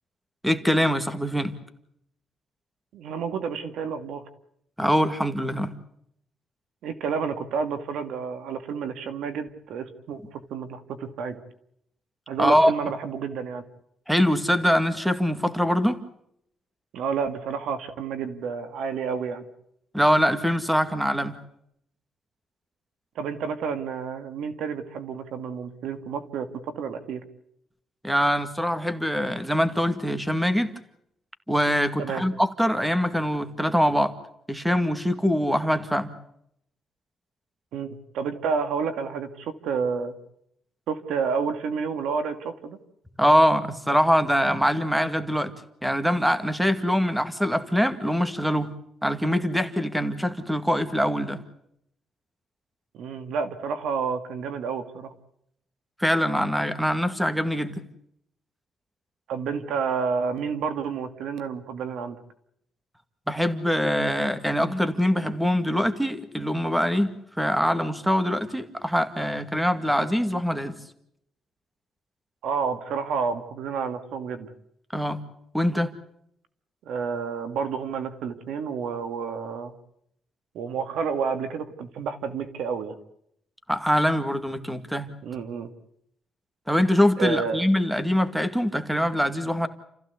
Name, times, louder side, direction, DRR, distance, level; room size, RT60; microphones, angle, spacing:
voice 1, 0.4-1.5 4.8-5.8 12.4-12.7 14.1-16.0 19.9-21.4 28.0-30.7 31.5-34.1 34.5-36.1 43.2-45.5 45.8-48.7 49.0-51.4 56.0-57.8 63.3-70.8 74.9-75.2 75.5-75.9 83.7-85.1 86.7-89.7, equal, 5° right, 11 dB, 2.1 m, -23 dB
voice 2, 2.9-4.2 6.8-11.4 12.3-13.6 16.9-19.4 23.2-26.5 26.8-27.2 32.0-32.2 37.7-37.9 38.1-40.2 40.9-42.8 52.9-55.1 59.3-62.2 72.4-74.5 76.9-79.7 80.5-83.0 85.2-85.7 87.2-87.6, right 6 dB, 85° right, 9 dB, 2.4 m, -30 dB
29.5 x 15.5 x 8.3 m, 0.75 s
cardioid pair, 110°, 0 cm